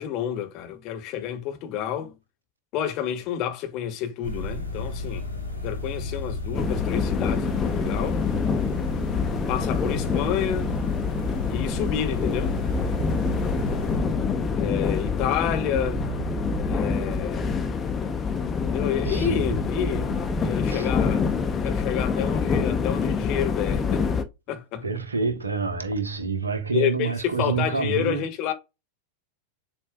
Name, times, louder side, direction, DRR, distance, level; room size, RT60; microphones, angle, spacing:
voice 1, 0.0-2.1 2.7-5.3 5.5-8.2 9.5-10.8 11.5-12.6 14.5-16.0 16.7-17.6 18.6-24.1 24.5-24.8 26.7-28.5, left 10 dB, 40° left, 1.0 m, -29 dB
sound 1, 4.2-14.0, left 2 dB, 85° left, 1.4 m, -33 dB
sound 2, 6.5-24.2, left 5 dB, 20° left, 0.6 m, -26 dB
sound 3, 12.7-15.0 15.7-18.0 19.0-21.3, right 10 dB, 30° right, 1.3 m, -35 dB
voice 2, 19.0-19.6 20.7-20.9 22.1-22.3 24.8-28.2, right 4 dB, 75° right, 0.9 m, -28 dB
7.3 x 2.5 x 2.3 m
figure-of-eight pair, 90°, 0 cm